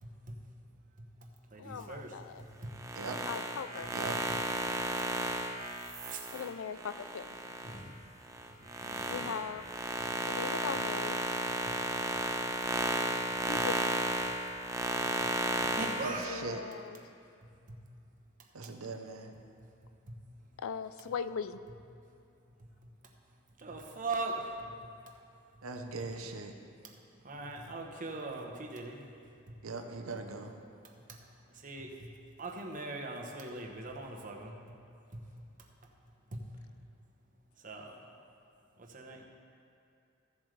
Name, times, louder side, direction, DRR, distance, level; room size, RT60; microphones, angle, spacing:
voice 1, 0.0-0.4 1.0-2.7 4.0-4.4 5.0-5.1 6.1-6.2 7.6-8.1 8.4-9.3 15.7-16.3 17.7-17.8 20.1-20.2 23.6-24.7 25.1-25.2 26.8-27.0 27.2-29.0 29.5-29.6 30.2-30.3 30.8-31.2 31.5-31.9 32.4-34.6 35.1-35.2 36.3-36.4 37.6-38.1 38.8-39.3, right 2 dB, 40° right, 1 dB, 1.0 m, -41 dB
voice 2, 1.6-2.4 3.3-3.9 6.3-7.3 9.1-9.6 10.3-11.2 13.5-14.0 16.3-17.0 20.6-21.6, left 6 dB, 75° left, 13 dB, 0.4 m, -39 dB
sound 1, 2.7-7.8 8.2-16.1, right 1 dB, 15° right, 0.7 m, -33 dB
voice 3, 16.0-16.6 18.5-19.3 25.6-26.5 29.6-30.5, right 3 dB, 85° right, 5 dB, 0.8 m, -40 dB
15.0 x 7.5 x 3.3 m, 2.5 s
head